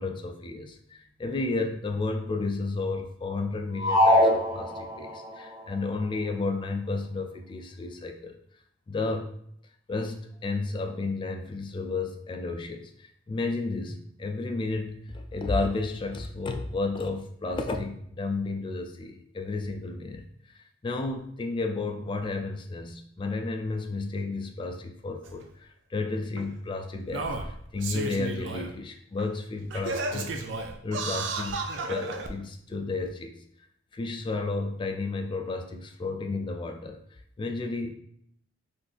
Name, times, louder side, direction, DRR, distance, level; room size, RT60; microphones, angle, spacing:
voice 1, 0.0-8.3 8.9-9.3 9.9-20.3 20.5-27.3 27.7-30.3 30.8-33.4 33.9-37.0 37.4-37.9, left 3 dB, 25° left, 4 dB, 0.3 m, -32 dB
sound 1, 3.8-5.3, left 1 dB, 20° right, 0.6 m, -22 dB
Singing, 25.2-25.3 26.4-26.5 27.1-28.7 29.2-29.3 29.7-32.3 33.1-33.2, right 3 dB, 85° right, 0.4 m, -33 dB
3.9 x 2.5 x 2.5 m, 0.67 s
head